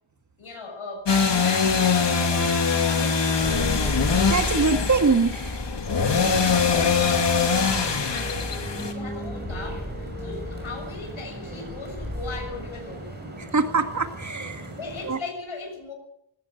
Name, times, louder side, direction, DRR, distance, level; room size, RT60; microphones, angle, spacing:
voice 1, 0.4-2.5 2.9-3.6 6.1-8.5 8.8-13.1 14.8-15.9, left 3 dB, 80° left, 2 dB, 6.9 m, -38 dB
sound 1, 1.1-8.9, left 5 dB, 60° left, 2.6 m, -23 dB
sound 2, 3.4-13.0, left 1 dB, 15° left, 6.7 m, -33 dB
voice 2, 4.3-5.6 13.4-14.7 15.1-15.2, right 4 dB, 35° right, 6 dB, 1.8 m, -23 dB
sound 3, 7.8-15.2, right 1 dB, 20° right, 6.7 m, -40 dB
19.0 x 18.5 x 7.9 m, 0.78 s
wide cardioid pair, 160°, 48 cm